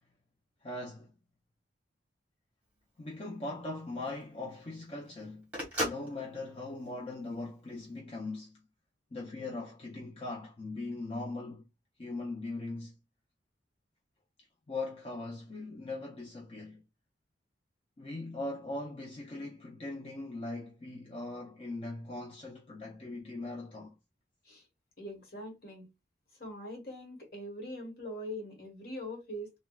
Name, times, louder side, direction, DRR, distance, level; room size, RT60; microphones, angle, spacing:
voice 1, 0.6-1.1 3.0-5.5 5.8-8.6 9.1-11.7 12.0-12.9 14.7-16.8 18.0-24.0, left 2 dB, 30° left, 0.5 m, -40 dB
Telephone, 2.6-7.8, equal, 10° right, 1.0 m, -39 dB
voice 2, 25.0-25.8 26.4-29.5, equal, 55° left, 1.2 m, -42 dB
3.5 x 2.1 x 2.3 m
head